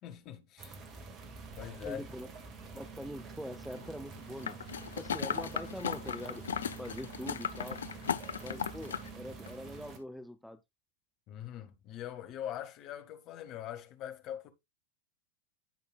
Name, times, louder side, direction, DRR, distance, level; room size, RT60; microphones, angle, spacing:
voice 1, 0.0-0.8 1.6-2.0 11.3-14.5, left 11 dB, 35° left, 1.5 m, -42 dB
sound 1, 0.6-10.0, right 4 dB, 35° right, 1.9 m, -47 dB
voice 2, 1.8-2.3 2.7-6.5 6.8-7.8 8.4-10.6, equal, ahead, 0.7 m, -44 dB
sound 2, 4.4-9.1 9.5-9.6, left 8 dB, 65° left, 0.5 m, -36 dB
16.0 x 5.5 x 2.3 m
figure-of-eight pair, 90°, 0 cm